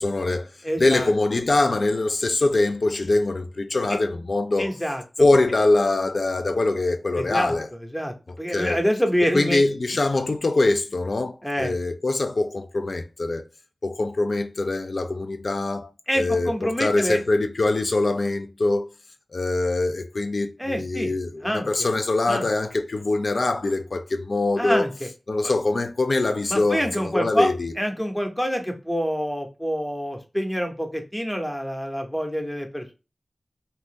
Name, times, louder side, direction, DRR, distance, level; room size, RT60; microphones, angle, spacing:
voice 1, 0.0-0.5 0.8-4.7 5.2-7.7 8.5-8.8 9.3-13.4 13.8-18.9 19.3-24.9 25.3-27.7, left 2 dB, 65° left, 0.4 m, -23 dB
voice 2, 0.6-1.1 3.9-4.0 4.6-5.0 7.2-7.5 7.9-9.6 11.4-11.8 16.1-17.2 20.6-21.1 21.4-21.7 22.3-22.5 24.6-25.1 26.5-32.9, equal, 5° left, 0.7 m, -26 dB
2.7 x 2.5 x 3.5 m
wide cardioid pair, 70°, 0 cm